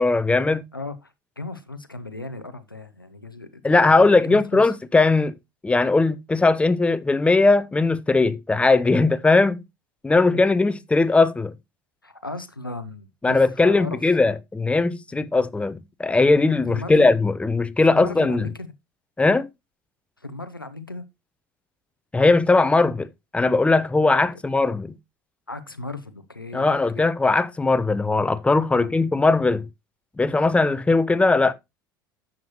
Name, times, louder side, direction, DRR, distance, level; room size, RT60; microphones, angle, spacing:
voice 1, 0.0-0.6 3.6-5.3 5.6-9.6 10.0-11.5 13.2-18.5 19.2-19.5 22.1-23.1 23.3-24.9 26.5-29.7 30.2-31.5, left 3 dB, 10° left, 0.7 m, -19 dB
voice 2, 0.7-4.7 10.3-10.4 12.0-14.1 16.7-17.1 17.9-18.7 20.2-21.1 24.1-24.2 25.5-27.1 28.7-28.9, left 2 dB, 90° left, 0.8 m, -36 dB
10.5 x 7.5 x 2.9 m
figure-of-eight pair, 65°, 11 cm